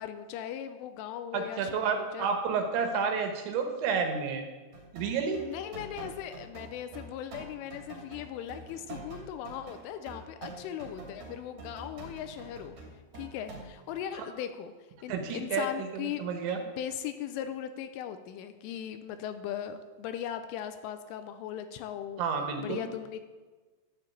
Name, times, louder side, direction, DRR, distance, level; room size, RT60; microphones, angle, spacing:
voice 1, 0.0-2.3 5.4-12.8 13.2-14.7 15.0-16.2 16.6-22.2 22.6-23.3, left 10 dB, 85° left, 9 dB, 3.1 m, -38 dB
voice 2, 1.3-4.4 4.9-5.4 15.1-15.7 15.9-16.6 22.2-22.9, right 5 dB, 70° right, 5 dB, 3.4 m, -30 dB
sound 1, 4.7-14.0, right 2 dB, 40° right, 3.5 m, -46 dB
12.0 x 7.4 x 8.4 m, 1.3 s
omnidirectional pair, 5.9 m